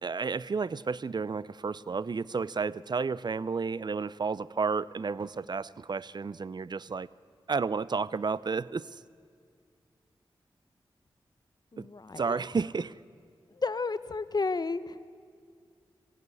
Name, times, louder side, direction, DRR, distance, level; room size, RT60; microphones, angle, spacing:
voice 1, 0.0-7.1 7.5-9.0 11.8-11.9 12.2-12.9, right 5 dB, 50° right, 20 dB, 0.5 m, -32 dB
voice 2, 11.7-12.4 13.5-15.0, left 4 dB, 45° left, 14 dB, 0.9 m, -32 dB
21.5 x 16.5 x 9.7 m, 2.2 s
cardioid pair, 45°, 9 cm